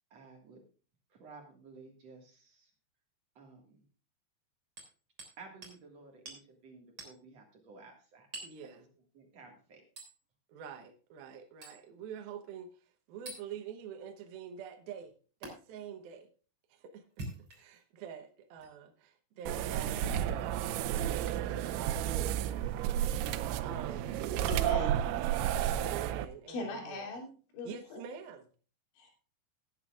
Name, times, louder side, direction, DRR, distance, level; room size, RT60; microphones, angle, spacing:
voice 1, 0.1-0.6 1.1-2.7 3.4-3.8 5.4-8.3 8.8-8.9 9.1-9.8, right 4 dB, 50° right, 2 dB, 2.1 m, -54 dB
Hammer, 4.8-5.4 5.6-5.8 6.3-6.4 7.0-7.2 8.3-8.6 10.0-10.2 11.6-11.8 13.3-13.4 15.4-15.5 17.0-17.8 18.6-18.7 20.0-20.2 21.1-21.3 22.8-22.9, right 2 dB, 30° right, 3.8 m, -46 dB
voice 2, 8.4-8.9 10.5-15.1 15.4-16.3 16.7-22.4 23.6-24.1 25.7-27.2 27.6-28.5, right 7 dB, 70° right, 5 dB, 2.5 m, -46 dB
sound 1, 19.5-26.3, right 11 dB, 90° right, 3.0 m, -32 dB
voice 3, 24.5-25.0 26.5-27.3 27.5-28.0 29.0-29.1, left 3 dB, 85° left, 0 dB, 5.2 m, -40 dB
18.0 x 9.5 x 2.4 m, 0.38 s
omnidirectional pair, 5.2 m